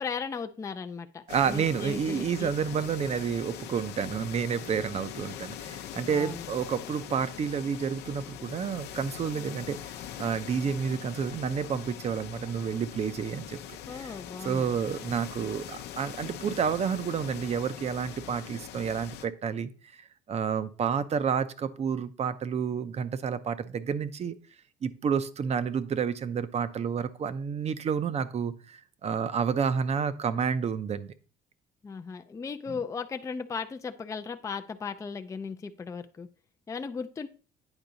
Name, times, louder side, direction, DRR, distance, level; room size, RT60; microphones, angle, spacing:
voice 1, 0.0-2.5 6.1-6.5 13.9-14.8 31.8-36.3 36.7-37.3, left 5 dB, 20° left, 7 dB, 0.4 m, -37 dB
sound 1, 1.3-19.3, left 10 dB, 80° left, 0.6 m, -42 dB
voice 2, 1.3-9.8 10.2-13.6 13.9-14.2 14.4-19.7 20.3-24.3 24.8-31.1, right 7 dB, 40° right, 14 dB, 0.6 m, -30 dB
9.0 x 4.6 x 4.0 m, 0.38 s
cardioid pair, 110°, 17 cm